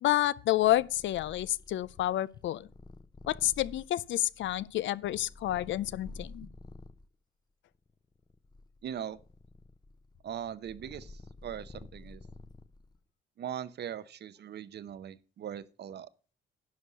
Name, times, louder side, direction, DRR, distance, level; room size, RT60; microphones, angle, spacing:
voice 1, 0.0-2.7 3.3-6.5, left 14 dB, 70° left, 0.5 m, -29 dB
Purr, 0.5-7.1 7.7-13.0, left 3 dB, 20° left, 0.7 m, -50 dB
voice 2, 8.8-9.2 10.2-12.2 13.4-16.1, right 9 dB, 55° right, 0.8 m, -40 dB
11.0 x 4.7 x 6.7 m
cardioid pair, 90°, 20 cm